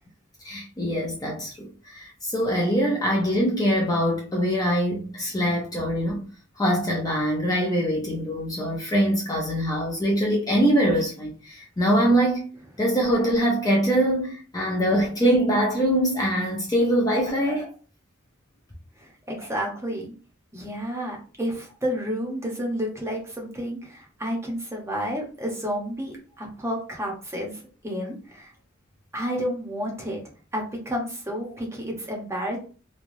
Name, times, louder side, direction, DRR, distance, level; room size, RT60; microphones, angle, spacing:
voice 1, 0.4-1.7 1.9-6.2 6.6-12.5 12.8-17.7, equal, 20° left, 0.5 m, -23 dB
voice 2, 19.3-20.1 20.5-28.5 29.1-30.2 30.5-32.6, equal, 15° right, 0.8 m, -30 dB
3.2 x 2.3 x 2.5 m
head